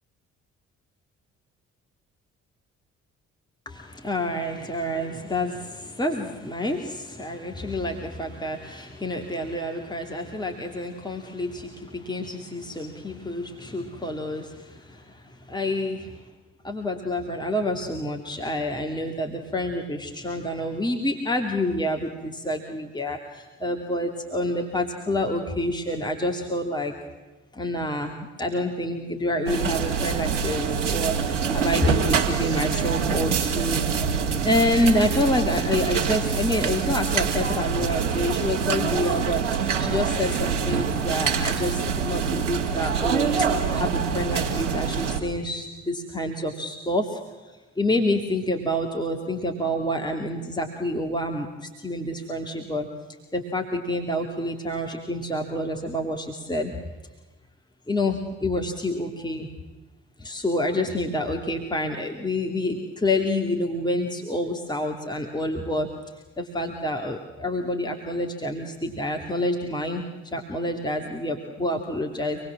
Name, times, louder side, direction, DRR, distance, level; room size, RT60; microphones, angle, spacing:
voice 1, 3.7-14.5 15.5-16.1 16.6-26.9 27.6-33.8 34.4-39.4 39.8-47.2 47.8-51.5 51.8-52.9 53.3-56.7 57.9-59.5 60.2-65.9 66.4-70.0 70.3-72.4, left 1 dB, 10° left, 2 dB, 2.8 m, -28 dB
sound 1, 29.5-45.2, right 6 dB, 80° right, 2.1 m, -25 dB
26.5 x 20.0 x 7.4 m, 1.2 s
figure-of-eight pair, 40°, 36 cm